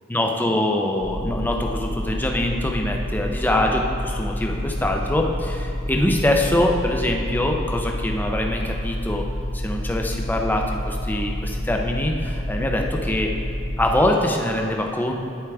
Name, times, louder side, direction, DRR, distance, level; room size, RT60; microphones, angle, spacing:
voice 1, 0.1-9.3 9.5-13.3 13.8-15.1, left 1 dB, 10° left, 2 dB, 0.5 m, -23 dB
sound 1, 1.0-14.1, left 1 dB, 15° right, 0.9 m, -28 dB
12.0 x 4.8 x 3.4 m, 2.6 s
head